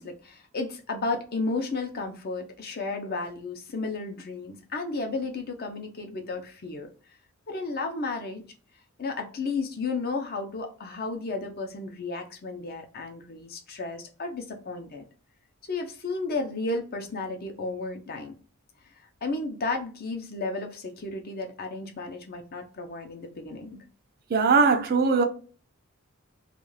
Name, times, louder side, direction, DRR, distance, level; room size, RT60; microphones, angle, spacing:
voice 1, 0.0-6.9 7.5-8.4 9.0-15.0 15.6-18.4 19.2-23.8, left 3 dB, 45° left, 0.6 m, -33 dB
voice 2, 24.3-25.2, right 4 dB, 45° right, 0.4 m, -20 dB
2.4 x 2.3 x 3.1 m
head